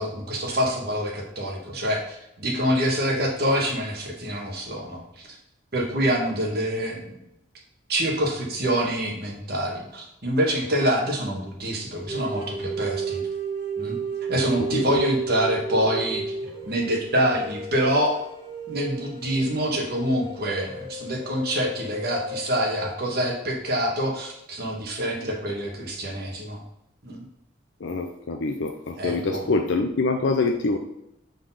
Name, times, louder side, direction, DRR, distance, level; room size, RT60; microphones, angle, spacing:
voice 1, 0.0-5.3 5.7-7.1 7.9-13.2 13.8-14.0 14.3-16.2 16.7-18.2 18.7-26.6 27.0-27.2 29.0-29.5, equal, 50° right, 0 dB, 1.4 m, -26 dB
sound 1, 12.1-22.9, right 4 dB, 25° right, 1.3 m, -33 dB
voice 2, 27.8-30.8, left 3 dB, 65° left, 4 dB, 0.5 m, -25 dB
4.9 x 4.0 x 5.5 m, 0.83 s
head